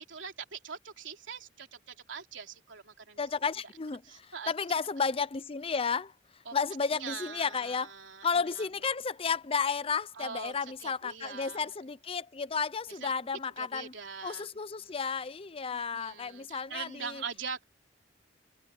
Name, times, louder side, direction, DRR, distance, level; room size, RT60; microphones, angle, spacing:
voice 1, 0.0-3.2 4.0-4.5 6.4-6.5 6.9-8.6 10.2-11.6 12.9-13.1 13.6-14.5 14.8-15.0 15.7-17.6, right 6 dB, 85° right, 3.3 m, -43 dB
voice 2, 3.2-6.1 6.5-7.9 8.2-13.9 14.2-17.2, left 5 dB, 30° left, 0.5 m, -32 dB
head